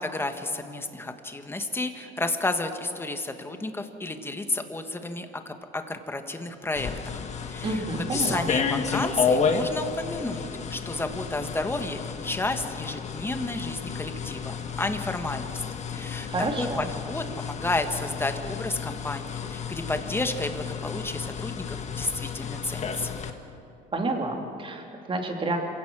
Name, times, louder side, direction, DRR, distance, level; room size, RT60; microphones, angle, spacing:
voice 1, 0.0-7.8 8.1-15.6 15.9-16.3 16.6-23.2, left 2 dB, 15° left, 6 dB, 1.6 m, -32 dB
sound 1, 6.8-23.3, left 6 dB, 40° left, 1.6 m, -31 dB
voice 2, 7.6-8.5 16.3-16.9 23.9-25.6, right 2 dB, 30° right, 2 dB, 2.8 m, -29 dB
27.0 x 17.0 x 6.2 m, 2.8 s
cardioid pair, 110°, 17 cm